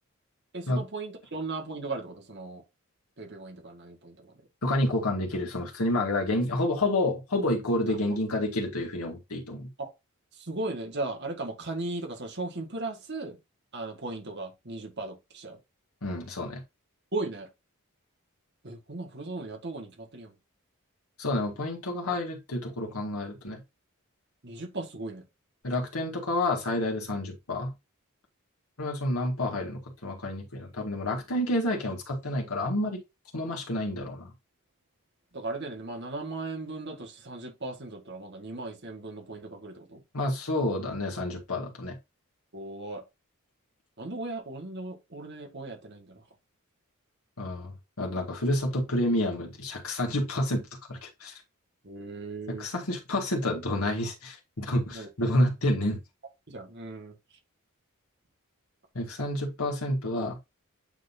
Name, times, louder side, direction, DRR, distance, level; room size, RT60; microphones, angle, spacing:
voice 1, 0.5-2.6 3.2-4.3 7.9-8.2 9.8-9.9 10.3-13.4 13.7-15.6 17.1-17.5 18.6-20.3 24.4-25.2 35.3-40.0 42.5-43.0 44.0-46.2 51.8-52.7 54.9-55.1 56.5-57.1, right 2 dB, 50° right, 1.8 m, -37 dB
voice 2, 4.6-9.7 16.0-16.6 21.2-23.6 25.6-27.7 28.8-33.0 33.3-34.3 40.1-42.0 47.4-51.3 52.6-56.0 59.0-60.4, left 1 dB, 75° left, 1.9 m, -29 dB
9.0 x 3.8 x 2.7 m
head